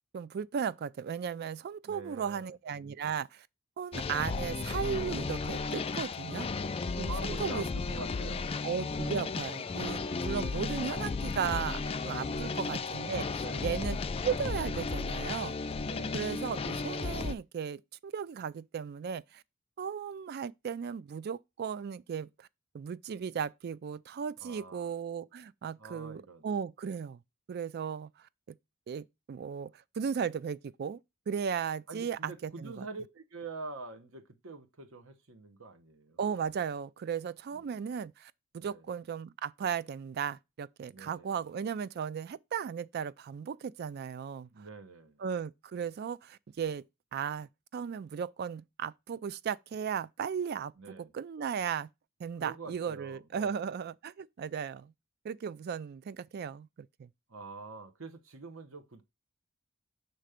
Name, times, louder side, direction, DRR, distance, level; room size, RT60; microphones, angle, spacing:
voice 1, 0.1-3.5 3.8-6.5 7.0-7.6 8.6-14.0 14.2-15.6 16.1-19.4 19.8-22.5 22.7-27.2 27.5-28.1 28.5-28.6 28.9-31.0 31.3-32.8 36.2-44.5 45.2-46.8 47.1-50.7 51.0-51.9 52.2-54.9 55.2-57.1, right 7 dB, 50° right, 0.3 m, -36 dB
voice 2, 1.9-2.5 6.3-6.6 7.1-8.5 12.2-12.7 13.3-13.8 15.8-16.2 24.4-24.9 25.8-26.4 31.9-36.2 37.5-37.8 38.6-38.9 40.9-41.4 44.5-45.2 50.8-51.1 52.4-53.7 57.3-59.0, right 3 dB, 70° right, 1.0 m, -46 dB
sound 1, 3.9-17.3, left 4 dB, 30° left, 0.4 m, -34 dB
6.6 x 3.1 x 5.0 m
head